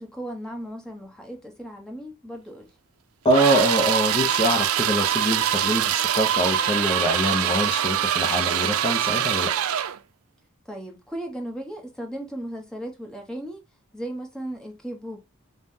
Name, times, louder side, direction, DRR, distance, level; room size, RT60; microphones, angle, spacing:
voice 1, 0.0-2.7 10.7-13.6 13.9-15.2, right 1 dB, 5° left, 1.0 m, -36 dB
voice 2, 3.2-9.5, equal, 25° left, 0.6 m, -24 dB
sound 1, 3.3-10.0, right 10 dB, 85° right, 0.4 m, -24 dB
5.4 x 2.1 x 2.6 m
head